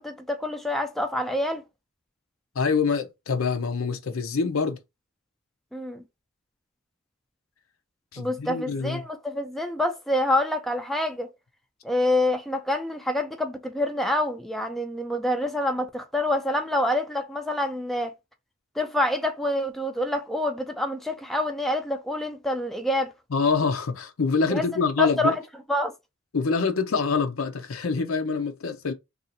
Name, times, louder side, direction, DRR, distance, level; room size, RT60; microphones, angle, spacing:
voice 1, 0.0-1.6 5.7-6.0 8.2-11.3 11.8-18.1 18.8-23.1 24.5-25.3 25.7-25.9, left 1 dB, ahead, 0.4 m, -27 dB
voice 2, 2.5-4.8 8.1-9.0 23.3-25.4 26.3-28.9, left 4 dB, 80° left, 0.6 m, -25 dB
2.7 x 2.4 x 4.1 m
head